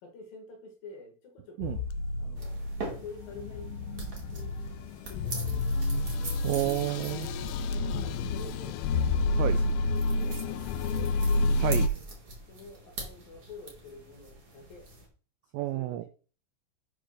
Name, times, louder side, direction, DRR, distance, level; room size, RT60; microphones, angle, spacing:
voice 1, 0.0-1.9 2.2-2.6 2.9-3.7 4.3-5.9 7.8-11.1 11.9-12.0 12.5-14.9 15.5-16.1, left 3 dB, 60° left, 2 dB, 2.8 m, -49 dB
sound 1, 1.6-11.9, left 2 dB, 85° left, 3.0 m, -29 dB
sound 2, 2.4-15.1, right 2 dB, 50° right, 1.1 m, -44 dB
voice 2, 6.4-7.3 9.4-9.6 11.6-11.9 15.5-16.0, right 15 dB, 85° right, 11 dB, 2.5 m, -30 dB
8.5 x 3.6 x 6.3 m, 0.38 s
omnidirectional pair, 5.5 m